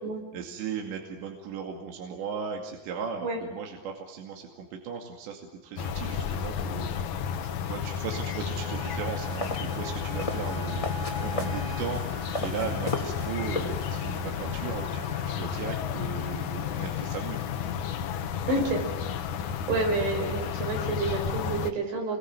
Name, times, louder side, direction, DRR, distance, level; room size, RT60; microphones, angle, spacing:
voice 1, 0.3-6.9 7.4-17.7, right 6 dB, 70° right, 2 dB, 4.5 m, -37 dB
sound 1, 5.8-21.7, left 7 dB, 70° left, 1.8 m, -32 dB
sound 2, 8.6-15.8, right 1 dB, 40° right, 2.8 m, -43 dB
sound 3, 9.2-14.2, left 1 dB, 10° left, 1.6 m, -36 dB
voice 2, 18.5-18.8 19.7-22.2, right 3 dB, 90° right, 2 dB, 8.2 m, -28 dB
28.5 x 22.0 x 9.2 m, 1.1 s
omnidirectional pair, 5.2 m